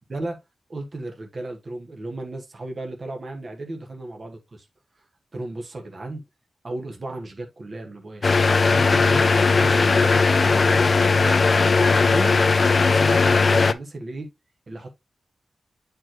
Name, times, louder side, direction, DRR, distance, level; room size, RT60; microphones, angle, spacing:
voice 1, 0.7-4.6 5.3-6.2 6.6-11.4 11.9-12.4 12.8-14.3 14.7-14.9, right 2 dB, 35° right, 1.3 m, -34 dB
sound 1, 8.2-13.7, left 4 dB, 40° left, 0.4 m, -18 dB
8.4 x 4.7 x 2.9 m
wide cardioid pair, 180°, 0 cm